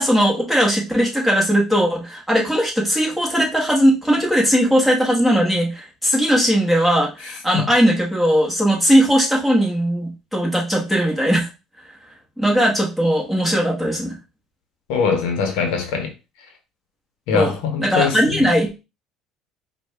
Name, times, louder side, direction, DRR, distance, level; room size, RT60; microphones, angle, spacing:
voice 1, 0.0-11.5 12.4-14.2 17.3-17.5 17.8-18.8, equal, ahead, 1.6 m, -18 dB
voice 2, 14.9-16.1 17.3-18.5, left 5 dB, 80° left, 1.0 m, -22 dB
4.7 x 2.5 x 3.3 m
cardioid pair, 115°, 0 cm